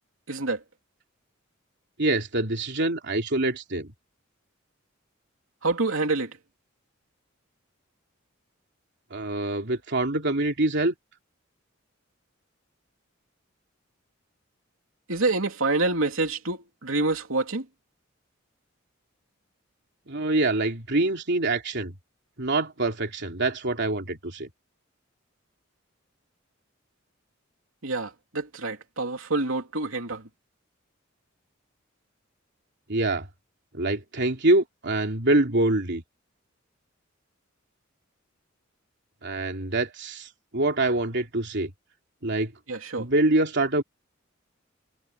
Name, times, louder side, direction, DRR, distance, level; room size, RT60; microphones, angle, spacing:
voice 1, 0.3-0.6 5.6-6.3 15.1-17.6 27.8-30.2 42.7-43.1, right 3 dB, 80° right, 3.1 m, -27 dB
voice 2, 2.0-3.9 9.1-10.9 20.1-22.0 22.4-24.5 32.9-33.3 33.7-36.0 39.2-41.7 42.2-42.5 43.0-43.8, right 2 dB, 60° right, 3.2 m, -25 dB
head